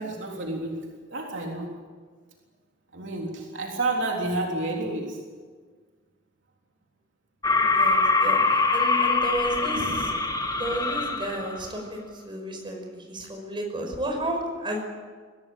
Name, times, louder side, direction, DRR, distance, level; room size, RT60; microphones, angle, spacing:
voice 1, 0.0-1.7 2.9-5.2 9.8-10.1, right 2 dB, 70° right, 0 dB, 3.6 m, -30 dB
sound 1, 7.4-11.6, left 3 dB, 20° left, 1.7 m, -23 dB
voice 2, 7.6-10.1 10.5-14.8, right 1 dB, 25° right, 2 dB, 5.6 m, -32 dB
24.0 x 17.5 x 8.7 m, 1.5 s
head